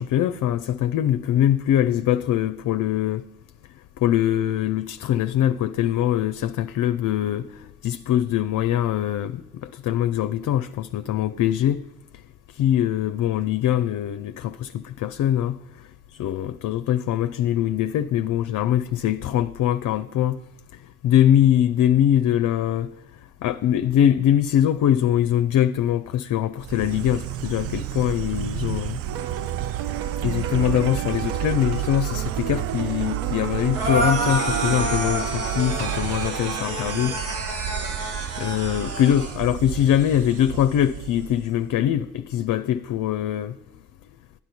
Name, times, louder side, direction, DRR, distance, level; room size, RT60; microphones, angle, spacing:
voice 1, 0.0-3.3 4.0-11.9 12.5-15.9 16.2-20.4 20.7-22.9 23.4-29.0 30.2-37.2 38.4-43.6, left 11 dB, 45° left, 0.6 m, -22 dB
Insect, 26.6-41.7, right 11 dB, 35° right, 0.4 m, -31 dB
sound 1, 29.1-37.2, right 9 dB, 60° right, 0.9 m, -33 dB
sound 2, 33.7-39.4, right 1 dB, 80° right, 2.1 m, -28 dB
12.0 x 10.0 x 4.3 m
figure-of-eight pair, 45°, 43 cm